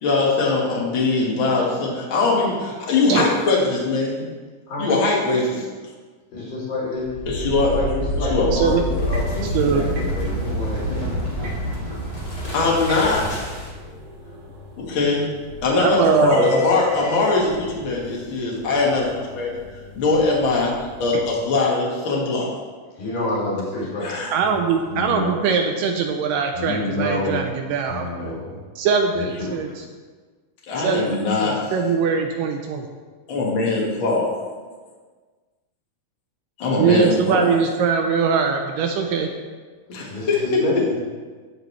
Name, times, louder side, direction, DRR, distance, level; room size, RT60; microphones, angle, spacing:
voice 1, 0.0-4.3 4.8-5.6 7.2-7.7 8.2-8.5 12.5-13.5 14.8-15.3 15.6-19.6 19.9-20.7 21.0-22.6 24.0-24.3 30.7-31.7 33.3-34.3 36.6-37.4 39.9-40.6, left 3 dB, 45° left, -3 dB, 1.7 m, -21 dB
voice 2, 6.3-11.1 23.0-24.2 24.5-24.6 24.9-25.3 26.5-27.4 27.9-28.6 29.2-29.7 40.1-41.0, left 2 dB, 85° left, -6 dB, 5.0 m, -28 dB
sound 1, 7.1-13.9, equal, 15° left, 1.3 m, -27 dB
sound 2, 8.4-21.4, right 1 dB, 60° right, 2.3 m, -38 dB
voice 3, 8.5-8.8 9.5-9.8 15.8-16.6 21.1-21.2 24.3-28.1 28.8-29.8 30.8-32.9 36.8-39.3, right 6 dB, 80° right, 4 dB, 2.0 m, -21 dB
15.5 x 5.3 x 3.2 m, 1.5 s
omnidirectional pair, 4.2 m